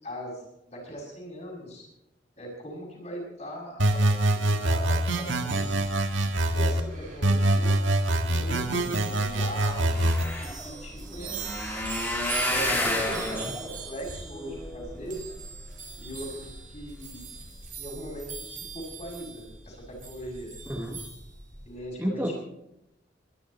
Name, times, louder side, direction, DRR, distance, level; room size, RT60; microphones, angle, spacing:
voice 1, 0.0-1.9 2.4-7.7 8.2-10.0 10.4-11.5 12.3-15.2 16.0-17.3 17.8-20.8 21.7-22.3, equal, 35° left, -1 dB, 7.1 m, -40 dB
sound 1, 3.8-6.8 7.2-10.2, right 1 dB, 85° right, 1.7 m, -24 dB
sound 2, 5.5-21.8, right 5 dB, 45° right, 4.6 m, -42 dB
sound 3, 9.5-15.7 16.3-16.7 17.2-17.4 17.6-17.7, left 1 dB, 10° left, 4.0 m, -32 dB
voice 2, 13.1-13.5 20.7-21.0 22.0-22.3, equal, 10° right, 1 dB, 1.4 m, -31 dB
22.0 x 13.0 x 4.4 m, 0.85 s
head